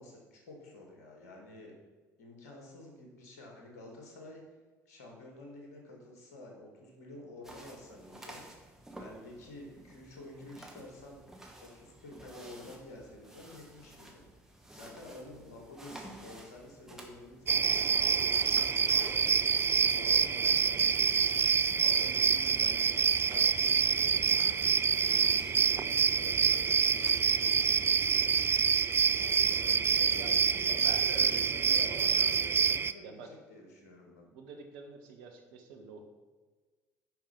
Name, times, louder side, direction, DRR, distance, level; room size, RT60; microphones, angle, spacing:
voice 1, 0.0-1.7 2.2-4.4 4.9-8.4 9.0-11.2 11.6-14.3 14.7-19.4 19.9-21.4 21.8-28.4 29.1-30.8 31.1-34.3, left 1 dB, 70° left, 0 dB, 2.2 m, -50 dB
sound 1, 7.4-27.1, right 1 dB, 5° right, 1.9 m, -53 dB
sound 2, 17.5-32.9, right 7 dB, 30° right, 0.4 m, -27 dB
voice 2, 30.7-32.1 33.0-33.3 34.2-36.1, right 4 dB, 60° right, 3 dB, 1.4 m, -46 dB
10.5 x 5.6 x 5.3 m, 1.3 s
figure-of-eight pair, 55°, 9 cm